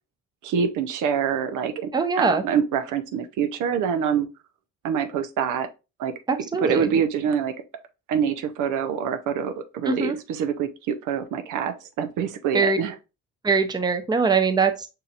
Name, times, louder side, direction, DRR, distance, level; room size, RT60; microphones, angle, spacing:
voice 1, 0.4-1.9 2.2-4.3 4.8-5.7 6.0-6.1 6.6-7.5 8.1-12.9, right 7 dB, 90° right, 0.6 m, -25 dB
voice 2, 1.9-2.4 6.3-6.9 9.9-10.2 12.5-12.8 13.4-14.9, right 4 dB, 15° right, 0.5 m, -22 dB
5.3 x 2.8 x 2.4 m
cardioid pair, 90°, 30 cm